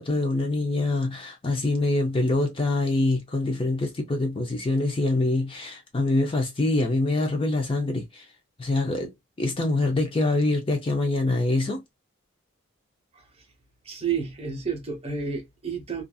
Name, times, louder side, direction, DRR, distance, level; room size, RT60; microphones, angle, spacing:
voice 1, 0.0-8.3 8.6-9.1 9.4-11.8, left 2 dB, 25° left, 0.4 m, -25 dB
voice 2, 13.8-16.0, right 6 dB, 30° right, 0.9 m, -30 dB
2.6 x 2.5 x 2.2 m
head